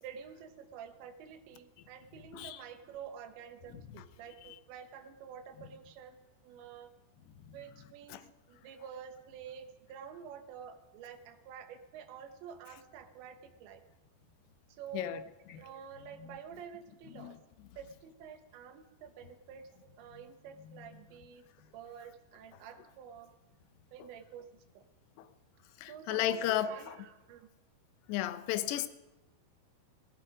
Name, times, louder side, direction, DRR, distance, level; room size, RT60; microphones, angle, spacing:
voice 1, 0.0-6.2 6.4-6.9 7.5-13.8 14.7-15.2 15.5-17.4 17.8-21.4 21.7-23.3 23.9-24.8 25.9-27.5 28.7-28.9, right 7 dB, 75° right, 7 dB, 3.4 m, -49 dB
voice 2, 25.8-26.9 28.1-28.9, left 12 dB, 75° left, 12 dB, 2.7 m, -33 dB
18.5 x 16.0 x 5.0 m, 1.1 s
omnidirectional pair, 5.3 m